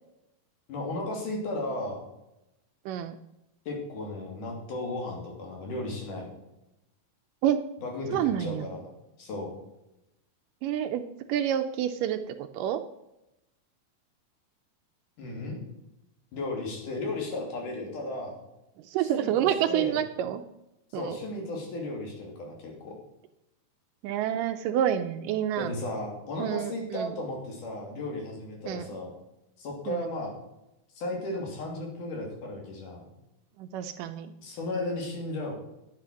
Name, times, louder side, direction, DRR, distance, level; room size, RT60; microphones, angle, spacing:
voice 1, 0.7-2.0 3.7-6.4 7.8-8.1 8.4-8.9 9.2-9.5 15.2-15.6 16.3-18.4 19.0-20.0 20.9-22.9 25.6-29.1 29.6-30.3 31.0-33.1 34.4-35.5, left 2 dB, 65° left, 0 dB, 4.2 m, -35 dB
voice 2, 2.9-3.2 7.4-7.6 8.1-8.7 10.6-11.0 11.3-12.8 18.9-20.4 20.9-21.2 24.0-25.7 26.4-27.1 28.7-28.9 29.9-30.1 33.6-34.3, right 10 dB, 80° right, 8 dB, 2.0 m, -28 dB
11.0 x 8.5 x 6.2 m, 0.90 s
omnidirectional pair, 4.1 m